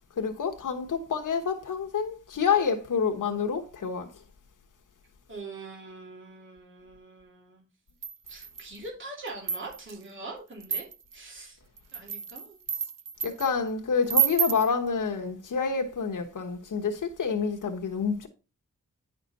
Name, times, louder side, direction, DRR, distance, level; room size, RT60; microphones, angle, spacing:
voice 1, 0.2-4.1 13.2-18.3, left 6 dB, 75° left, 1.1 m, -28 dB
voice 2, 5.3-7.6 8.3-10.9 11.1-11.6 11.9-12.6, right 3 dB, 40° right, 2.7 m, -43 dB
sound 1, 8.0-8.8 9.3-10.0 10.6-11.2 11.8-13.5 14.1-14.7, right 8 dB, 85° right, 0.7 m, -29 dB
10.0 x 5.9 x 4.1 m
wide cardioid pair, 145°, 32 cm